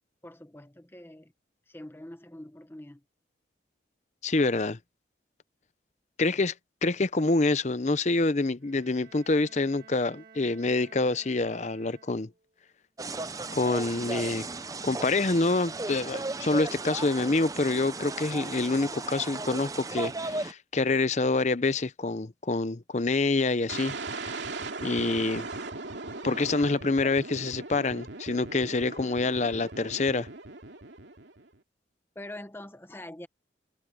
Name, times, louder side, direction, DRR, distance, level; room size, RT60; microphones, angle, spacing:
voice 1, 0.2-1.3 1.7-3.0 27.0-27.1 32.1-33.3, left 1 dB, 10° left, 0.9 m, -44 dB
voice 2, 4.2-4.8 6.2-6.5 6.8-12.3 13.5-14.5 14.8-24.3 24.8-25.5 26.2-30.3, left 3 dB, 40° left, 0.6 m, -27 dB
Bowed string instrument, 8.6-12.5, right 5 dB, 45° right, 2.7 m, -55 dB
sound 1, 13.0-20.5, right 3 dB, 20° right, 0.6 m, -35 dB
sound 2, 23.7-31.6, right 3 dB, 75° right, 2.5 m, -39 dB
head